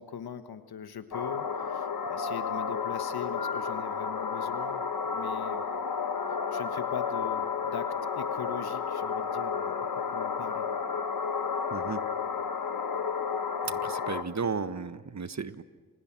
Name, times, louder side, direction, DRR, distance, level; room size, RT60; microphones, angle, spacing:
voice 1, 0.0-5.7 6.5-9.7 10.1-10.7, left 8 dB, 80° left, 10 dB, 1.4 m, -41 dB
sound 1, 1.1-14.2, left 6 dB, 65° left, 1.6 m, -32 dB
voice 2, 11.7-12.0 13.6-15.6, right 5 dB, 45° right, 12 dB, 1.4 m, -34 dB
29.5 x 27.5 x 6.1 m, 1.4 s
supercardioid pair, 40°, 37 cm